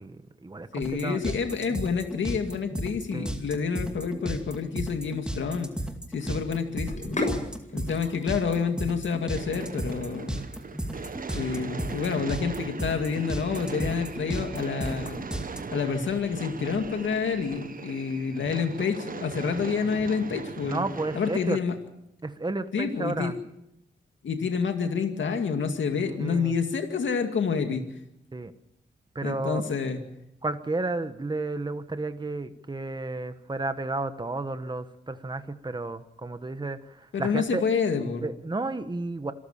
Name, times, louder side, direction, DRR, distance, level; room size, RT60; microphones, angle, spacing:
voice 1, 0.0-1.3 3.1-3.4 6.3-6.4 7.4-7.5 20.6-21.6 22.2-23.4 26.0-26.6 28.3-28.5 29.1-29.6 30.4-37.6 38.2-39.3, right 2 dB, 25° right, 10 dB, 1.3 m, -32 dB
voice 2, 0.7-5.7 6.1-6.9 7.7-10.4 11.3-15.2 15.7-20.9 21.1-21.7 22.7-23.3 24.2-27.8 29.2-30.0 37.1-38.3, left 5 dB, 85° left, 6 dB, 2.2 m, -28 dB
sound 1, 0.8-15.6, right 1 dB, 5° right, 2.4 m, -34 dB
Sink (filling or washing), 6.7-17.6, left 2 dB, 40° left, 7.1 m, -40 dB
sound 2, 9.3-21.6, right 5 dB, 45° right, 1.2 m, -39 dB
26.5 x 14.0 x 7.3 m, 0.82 s
cardioid pair, 80°, 19 cm